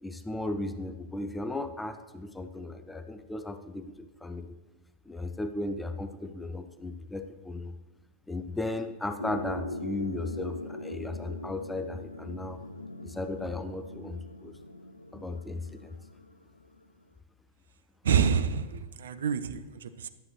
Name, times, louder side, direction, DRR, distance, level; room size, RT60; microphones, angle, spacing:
voice 1, 0.0-4.5 5.1-7.7 8.3-12.6 13.0-14.5 15.1-15.9, left 2 dB, 5° left, 8 dB, 0.5 m, -36 dB
sound 1, 9.2-16.9, left 1 dB, 85° left, 0.3 m, -41 dB
voice 2, 18.0-20.1, right 7 dB, 65° right, 12 dB, 0.4 m, -27 dB
11.5 x 7.6 x 3.1 m, 1.1 s
figure-of-eight pair, 90°, 0 cm